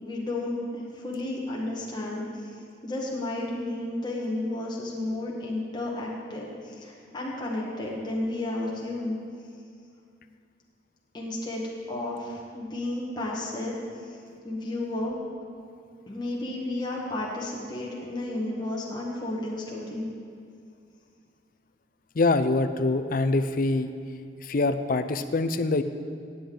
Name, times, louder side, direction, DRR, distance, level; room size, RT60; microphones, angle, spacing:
voice 1, 0.0-2.5 2.8-9.2 11.1-14.2 14.4-15.2 16.1-20.1, left 1 dB, 25° left, -4 dB, 1.4 m, -32 dB
voice 2, 22.2-23.9 24.4-25.8, left 3 dB, 45° left, 10 dB, 0.5 m, -24 dB
16.5 x 8.5 x 3.9 m, 2.4 s
head